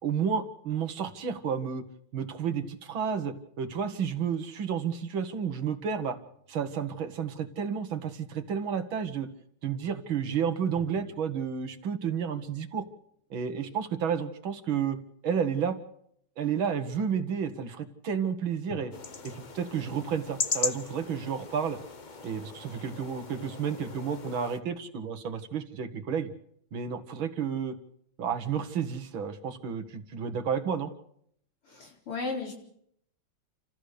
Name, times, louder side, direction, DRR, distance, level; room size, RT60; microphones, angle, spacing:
voice 1, 0.0-1.8 2.1-6.2 6.5-9.3 9.6-12.8 13.3-15.0 15.2-15.8 16.4-18.9 19.2-21.8 22.2-26.3 26.7-27.8 28.2-30.9, right 7 dB, 70° right, 8 dB, 2.2 m, -31 dB
sound 1, 6.1-7.8 10.8-13.4 18.7-21.7, left 3 dB, 25° left, 2.1 m, -54 dB
sound 2, 18.9-24.6, left 5 dB, 60° left, 0.4 m, -37 dB
voice 2, 31.6-32.5, left 3 dB, 90° left, 0 dB, 4.9 m, -35 dB
29.0 x 14.5 x 6.7 m, 0.72 s
omnidirectional pair, 2.3 m